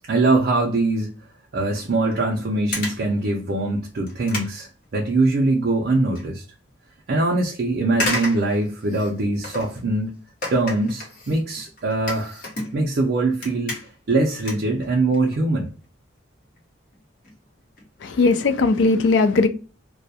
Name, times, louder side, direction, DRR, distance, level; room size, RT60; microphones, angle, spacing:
voice 1, 0.1-1.1 1.5-6.4 7.1-10.2 10.5-12.4 12.7-13.7 14.1-15.7, right 2 dB, 55° right, 0.4 m, -22 dB
sound 1, 2.1-2.3 2.7-3.1 3.6-3.7 4.1-5.4 5.8-6.2 6.7-6.8 7.9-9.8 10.4-13.0 13.3-14.1 14.4-15.4 15.7-15.9 16.6-16.7 16.9-17.0 17.2-17.3 17.6-17.9 18.3-18.4 18.7-18.8, left 1 dB, 45° left, 0.9 m, -32 dB
voice 2, 18.0-19.5, left 3 dB, 65° left, 0.4 m, -18 dB
2.2 x 2.1 x 2.6 m
head